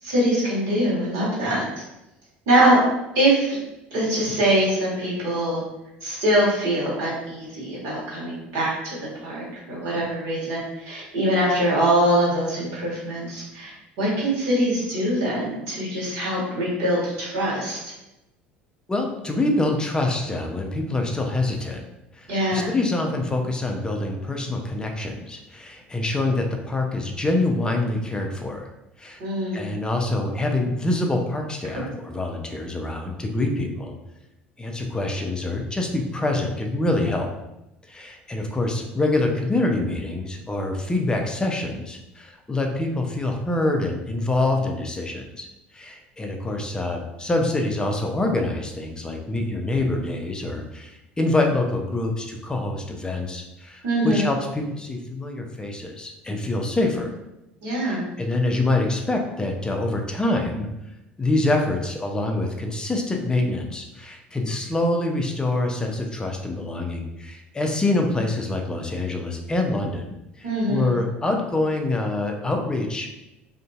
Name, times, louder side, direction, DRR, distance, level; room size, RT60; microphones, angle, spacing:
voice 1, 0.0-1.6 2.5-2.8 3.1-3.6 3.9-5.6 6.0-8.9 9.2-17.8 22.3-22.7 29.2-29.6 31.7-31.8 53.8-54.3 57.6-58.0 70.4-70.9, right 1 dB, 55° right, -7 dB, 1.4 m, -23 dB
voice 2, 18.9-21.9 22.2-28.7 29.0-29.2 29.5-33.9 34.6-37.3 37.9-45.5 45.7-57.1 57.8-60.7 61.2-70.1 70.4-73.1, left 2 dB, 15° left, 2 dB, 0.5 m, -25 dB
2.7 x 2.5 x 2.3 m, 0.92 s
figure-of-eight pair, 65°, 6 cm